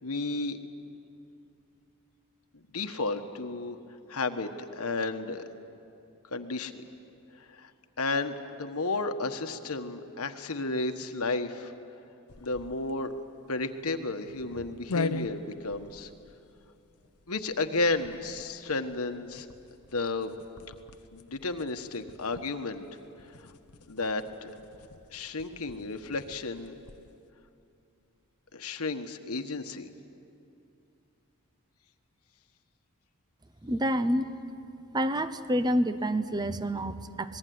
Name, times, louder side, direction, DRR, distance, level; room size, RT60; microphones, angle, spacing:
voice 1, 0.0-0.6 2.5-3.8 4.1-4.5 4.8-5.4 6.3-6.8 7.4-7.7 8.0-11.7 12.4-13.2 13.5-16.1 17.3-19.5 19.9-20.3 21.1-22.8 23.4-23.5 23.9-24.5 25.1-26.7 28.5-29.9, left 3 dB, 75° left, 7 dB, 1.4 m, -32 dB
sound 1, 12.3-27.2, left 3 dB, 90° left, 1.0 m, -42 dB
voice 2, 33.6-34.3 34.9-37.4, equal, 20° right, 12 dB, 0.9 m, -28 dB
26.5 x 20.5 x 9.5 m, 2.6 s
head